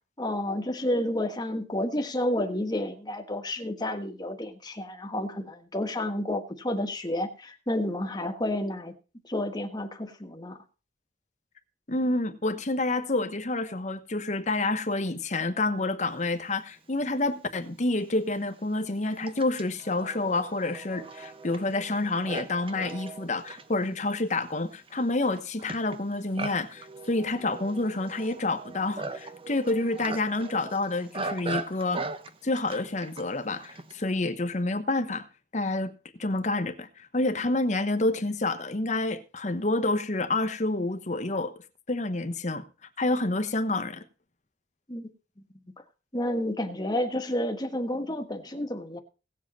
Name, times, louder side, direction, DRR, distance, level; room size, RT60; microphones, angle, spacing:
voice 1, 0.2-8.9 9.2-10.6 44.9-45.1 46.1-49.0, left 1 dB, 25° left, 1.5 m, -30 dB
voice 2, 11.9-32.0 32.4-35.2 35.5-35.9 36.2-41.5 41.9-42.6 43.0-44.0, left 2 dB, 45° left, 1.1 m, -28 dB
Livestock farm animals working animals, 17.3-17.4 18.1-34.0, right 3 dB, 30° right, 1.1 m, -40 dB
17.5 x 7.5 x 4.2 m
head